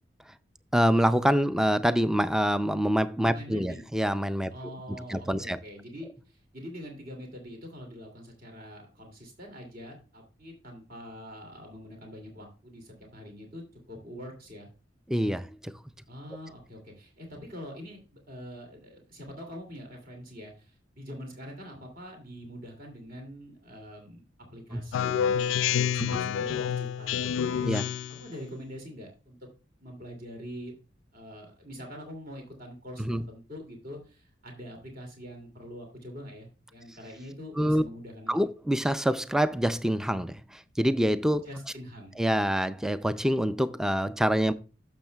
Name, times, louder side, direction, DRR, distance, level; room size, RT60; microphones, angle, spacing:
voice 1, 0.7-4.5 5.1-5.6 15.1-15.7 24.7-24.8 26.0-26.2 27.6-27.9 33.0-33.2 37.6-37.8 38.3-41.5 42.2-44.5, equal, 5° right, 0.3 m, -26 dB
voice 2, 3.3-3.9 4.5-14.7 16.1-24.2 24.5-27.7 28.1-29.4 29.8-30.8 31.1-38.3 41.4-42.2, equal, 50° right, 2.6 m, -44 dB
Speech synthesizer, 24.9-28.3, left 8 dB, 80° left, 0.3 m, -28 dB
12.0 x 7.1 x 2.3 m
head